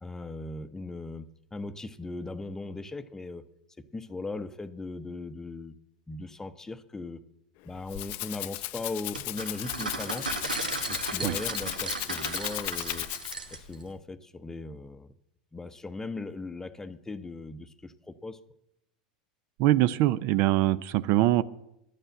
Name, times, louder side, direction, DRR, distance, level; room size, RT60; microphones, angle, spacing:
voice 1, 0.0-3.4 3.9-5.7 6.1-7.2 7.6-10.3 10.9-13.1 13.5-15.2 15.5-18.4, left 3 dB, 10° left, 12 dB, 0.7 m, -38 dB
Rattle (instrument), 7.6-13.6, left 19 dB, 50° left, 0.4 m, -35 dB
sound 1, 9.1-13.8, right 3 dB, 85° right, 1.3 m, -36 dB
voice 2, 19.6-21.4, right 15 dB, 50° right, 17 dB, 0.5 m, -23 dB
11.5 x 8.9 x 7.5 m, 0.83 s
figure-of-eight pair, 85°, 4 cm